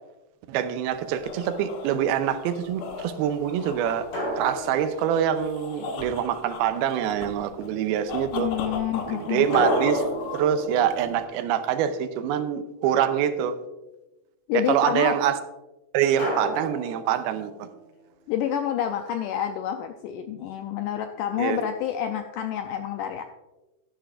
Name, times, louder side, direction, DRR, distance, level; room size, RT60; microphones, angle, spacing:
voice 1, 0.5-4.1 4.4-8.5 9.1-10.0 10.3-13.6 14.5-15.4 15.9-17.7 21.4-21.6, right 9 dB, 90° right, 10 dB, 2.6 m, -25 dB
sound 1, 0.9-11.2, left 4 dB, 65° left, 1.9 m, -37 dB
sound 2, 1.5-2.1 4.1-6.0 9.5-12.1 16.2-17.8, equal, 25° left, 4.1 m, -32 dB
voice 2, 8.3-9.5 14.5-15.2 18.3-23.2, left 10 dB, 90° left, 6 dB, 1.8 m, -28 dB
12.0 x 11.5 x 2.5 m, 1.0 s
omnidirectional pair, 4.3 m